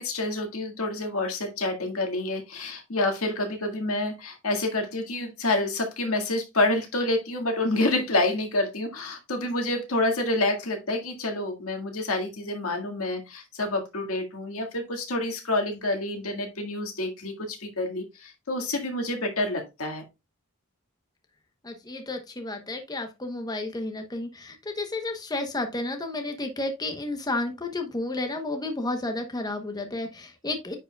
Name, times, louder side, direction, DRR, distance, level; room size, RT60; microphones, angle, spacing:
voice 1, 0.0-20.0, left 2 dB, 80° left, 3 dB, 1.8 m, -28 dB
voice 2, 21.6-30.7, left 2 dB, 20° left, 5 dB, 0.9 m, -32 dB
10.0 x 4.8 x 2.3 m, 0.24 s
head